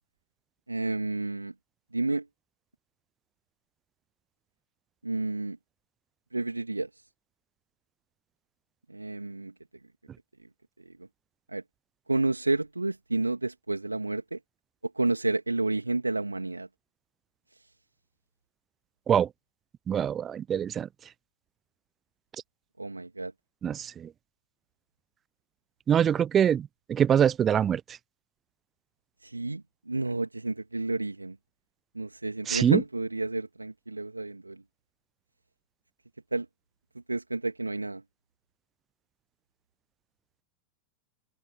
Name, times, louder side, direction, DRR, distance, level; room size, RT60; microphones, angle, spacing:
voice 1, 0.7-1.5 1.9-2.3 5.0-5.6 6.3-6.9 8.9-9.5 10.8-11.0 11.5-11.6 12.1-14.4 14.8-16.7 22.8-23.3 29.2-31.4 31.9-34.6 36.3-36.5 37.1-38.0, right 2 dB, 80° right, 2.5 m, -30 dB
voice 2, 19.9-20.9 23.6-24.1 25.9-27.8 32.5-32.8, right 9 dB, 25° right, 0.4 m, -24 dB
figure-of-eight pair, 90°, 0 cm